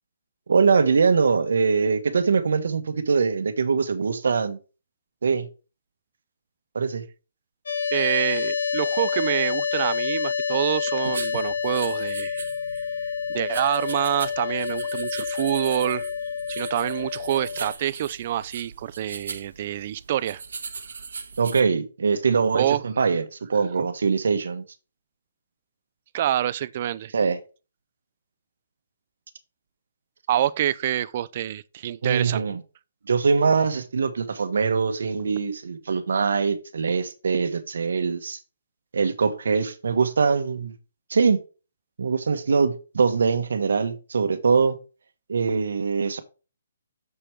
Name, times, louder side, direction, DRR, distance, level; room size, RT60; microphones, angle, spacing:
voice 1, 0.5-4.6 5.2-5.5 6.7-7.0 21.4-23.2 23.5-24.6 27.1-27.4 32.0-32.6 33.1-38.4 38.9-40.7 41.1-41.4 42.0-44.8 45.3-46.2, right 5 dB, 70° right, 1.2 m, -22 dB
sound 1, 7.7-17.7, left 6 dB, 70° left, 1.9 m, -28 dB
voice 2, 7.9-12.4 12.7-12.9 13.3-16.1 16.5-20.4 22.5-22.8 26.1-27.1 30.3-32.4, right 12 dB, 30° right, 0.3 m, -26 dB
sound 2, 11.0-21.6, right 5 dB, 90° right, 1.1 m, -39 dB
6.9 x 4.5 x 4.9 m
hypercardioid pair, 175°, 0 cm